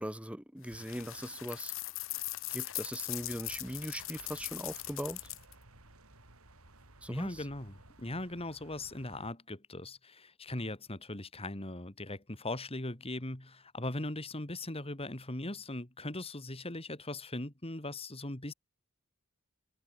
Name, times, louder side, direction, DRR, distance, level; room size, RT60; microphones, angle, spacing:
voice 1, 0.0-1.7 2.5-5.2 7.0-7.4, equal, 5° right, 3.3 m, -40 dB
sound 1, 0.7-5.5, left 17 dB, 65° left, 1.2 m, -40 dB
sound 2, 3.1-9.3, right 2 dB, 85° right, 5.6 m, -58 dB
voice 2, 7.1-18.5, left 2 dB, 30° left, 3.1 m, -39 dB
head